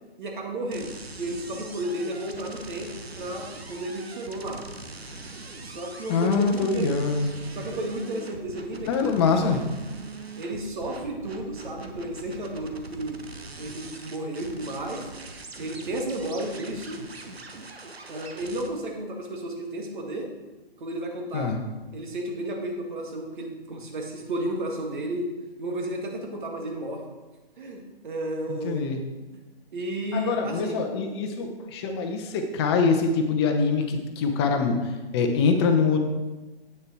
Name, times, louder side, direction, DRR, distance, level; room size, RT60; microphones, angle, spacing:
voice 1, 0.2-2.9 3.2-4.6 5.6-6.9 7.5-8.9 9.2-9.6 10.4-13.2 13.6-15.1 15.6-17.0 18.1-20.3 20.8-21.5 21.9-25.3 25.6-27.0 27.6-28.8 29.7-30.8, right 1 dB, 50° right, 1 dB, 1.9 m, -33 dB
sound 1, 0.7-18.7, right 2 dB, 80° right, 1.2 m, -42 dB
voice 2, 6.1-7.3 8.9-9.6 21.3-21.6 28.5-29.0 30.1-36.0, left 5 dB, 25° left, 4 dB, 0.9 m, -24 dB
8.8 x 6.7 x 4.6 m, 1.1 s
figure-of-eight pair, 130°, 31 cm